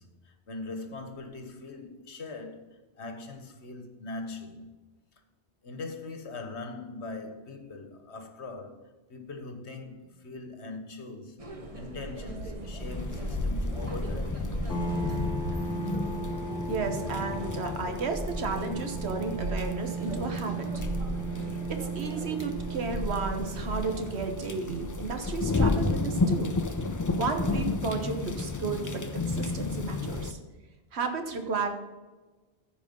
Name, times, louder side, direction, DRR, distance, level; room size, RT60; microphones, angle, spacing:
voice 1, 0.0-2.7 3.0-4.8 5.6-8.8 9.1-11.4 11.7-14.4, left 3 dB, 75° left, 1.5 m, -41 dB
sound 1, 11.4-24.3, right 1 dB, 30° right, 1.2 m, -38 dB
sound 2, 12.8-30.3, left 3 dB, 25° left, 0.4 m, -33 dB
sound 3, 14.7-28.0, right 3 dB, 55° left, 1.6 m, -38 dB
voice 2, 16.7-20.8 21.3-26.6 27.1-30.4 30.9-31.7, right 4 dB, 70° right, 1.5 m, -33 dB
14.5 x 4.9 x 5.4 m
omnidirectional pair, 1.1 m